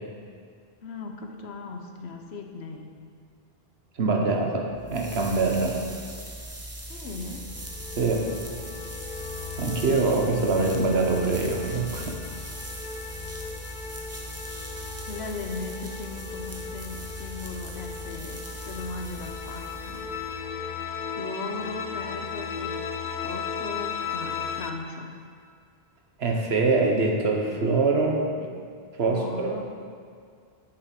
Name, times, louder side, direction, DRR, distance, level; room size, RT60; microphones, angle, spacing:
voice 1, 0.8-2.9 6.9-7.5 13.0-13.1 15.0-20.1 20.5-20.9 21.1-22.9 23.2-25.1 28.4-28.5 29.0-29.7, left 3 dB, 90° left, 3 dB, 1.2 m, -38 dB
voice 2, 4.0-5.8 8.0-8.2 9.6-12.2 26.2-28.2 29.0-29.6, right 3 dB, 80° right, 1 dB, 1.4 m, -24 dB
sound 1, 4.7-20.5, right 1 dB, 15° right, 0.7 m, -40 dB
sound 2, 7.3-24.7, left 6 dB, 55° left, 0.7 m, -36 dB
7.9 x 6.5 x 6.0 m, 2.2 s
omnidirectional pair, 1.0 m